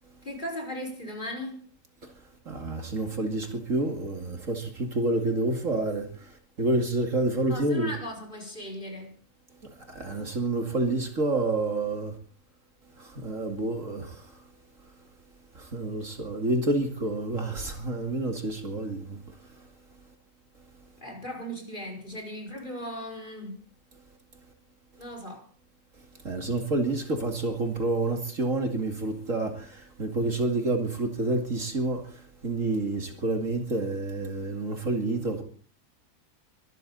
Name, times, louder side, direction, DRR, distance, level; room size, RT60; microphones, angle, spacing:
voice 1, 0.2-1.7 7.5-9.1 21.0-23.6 25.0-25.5, equal, 30° left, 5.2 m, -37 dB
voice 2, 2.5-6.1 6.6-7.9 9.9-12.1 13.0-14.2 15.6-19.2 26.2-32.0 32.4-35.4, right 2 dB, 55° right, 2.7 m, -28 dB
23.5 x 13.5 x 4.1 m
omnidirectional pair, 1.7 m